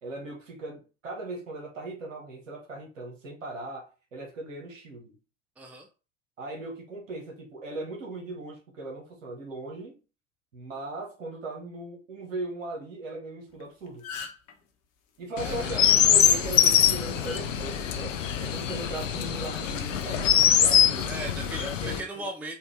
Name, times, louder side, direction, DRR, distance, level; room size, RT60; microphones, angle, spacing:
voice 1, 0.0-5.2 6.4-10.0 10.5-14.1 15.2-21.2 21.6-22.3, right 2 dB, 75° right, 1.6 m, -38 dB
voice 2, 5.6-5.9 15.4-15.9 21.0-22.6, right 2 dB, 5° right, 0.6 m, -37 dB
sound 1, 13.5-13.6 13.9-14.5 16.2-16.4 17.3-17.4 18.5-18.7, left 5 dB, 40° left, 1.1 m, -39 dB
Chirp tweet, 15.4-22.0, left 9 dB, 70° left, 0.7 m, -23 dB
4.4 x 2.6 x 3.6 m
figure-of-eight pair, 80°, 39 cm